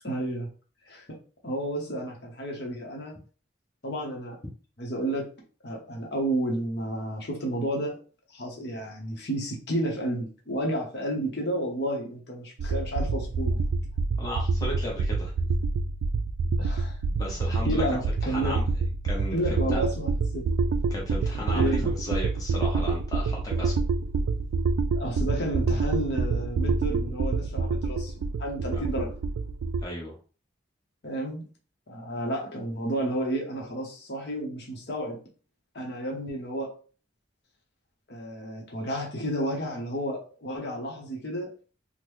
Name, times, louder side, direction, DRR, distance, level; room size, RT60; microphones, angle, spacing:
voice 1, 0.0-0.5 0.9-1.2 1.4-3.1 3.8-4.4 4.8-5.3 5.6-8.0 8.3-13.6 16.6-17.2 17.5-18.5 19.3-20.5 21.5-21.9 24.9-28.1 28.4-29.1 31.0-31.4 31.9-35.2 35.7-36.8 38.1-41.5, right 1 dB, 55° left, -1 dB, 0.9 m, -31 dB
sound 1, 12.6-29.8, right 4 dB, 90° right, 0.3 m, -27 dB
voice 2, 14.2-15.3 17.2-17.8 18.2-18.7 19.0-19.4 19.7-19.8 20.9-23.8 29.8-30.1, left 1 dB, 20° left, -3 dB, 0.7 m, -34 dB
3.6 x 2.1 x 3.1 m, 0.38 s
head